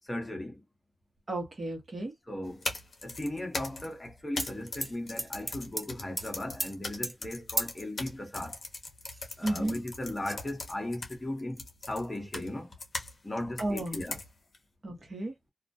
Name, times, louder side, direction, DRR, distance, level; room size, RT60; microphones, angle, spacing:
voice 1, 0.0-0.6 2.3-2.6 3.0-8.6 9.4-12.7 13.2-14.2, left 1 dB, 20° left, 0.8 m, -37 dB
voice 2, 1.3-2.1 9.4-9.8 13.6-14.0 14.8-15.3, right 1 dB, 40° right, 0.9 m, -33 dB
sound 1, 2.4-13.1 13.6-14.6, left 3 dB, 50° left, 0.7 m, -40 dB
sound 2, 4.4-4.5 4.8-5.9 6.2-6.3 6.6-6.7 7.0-7.1 7.6-7.8 8.7-8.8 9.1-9.8 10.2-10.4, right 2 dB, 20° right, 0.4 m, -34 dB
2.3 x 2.1 x 2.6 m
wide cardioid pair, 115°, 0 cm